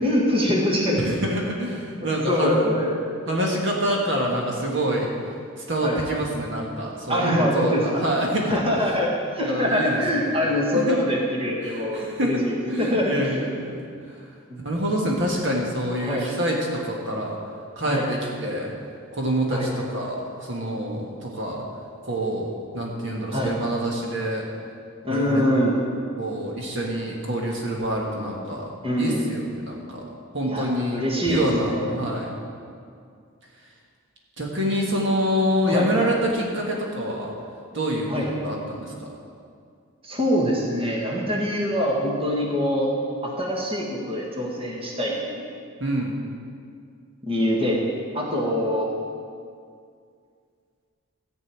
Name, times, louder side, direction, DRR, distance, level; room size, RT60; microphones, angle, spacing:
voice 1, 0.0-1.0 2.3-2.9 5.8-6.0 7.1-8.0 8.5-13.3 14.5-14.6 16.0-16.3 17.8-18.1 19.5-19.7 23.3-23.5 25.0-25.8 28.8-29.3 30.4-32.0 35.7-35.9 38.1-38.3 40.0-42.9 43.2-45.6 47.2-47.9 48.1-48.9, equal, 25° right, -3 dB, 1.8 m, -24 dB
voice 2, 0.9-2.7 3.3-5.1 5.6-8.6 9.4-10.3 10.7-11.0 11.6-12.3 12.7-13.8 14.1-14.3 14.6-17.4 17.7-18.7 19.2-21.6 22.1-24.5 25.1-25.4 26.2-30.0 30.3-32.4 34.4-37.3 37.7-38.9 45.8-46.2, equal, 55° right, -2 dB, 1.6 m, -26 dB
14.5 x 5.3 x 8.7 m, 2.3 s
head